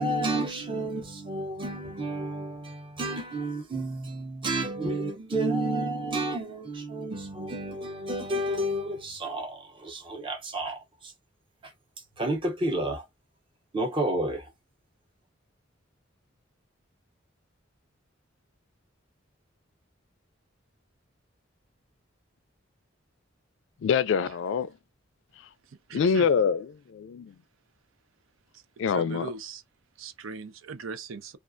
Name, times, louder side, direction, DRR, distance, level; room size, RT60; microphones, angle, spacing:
voice 1, 0.0-11.1 12.2-13.0 13.7-14.4, right 1 dB, 25° right, 0.7 m, -31 dB
voice 2, 23.8-24.7 25.9-26.6 26.9-27.3 28.8-29.3, left 6 dB, 65° left, 0.3 m, -24 dB
voice 3, 25.7-26.3 28.5-29.6 30.0-31.4, right 4 dB, 90° right, 0.5 m, -40 dB
2.4 x 2.2 x 2.5 m
head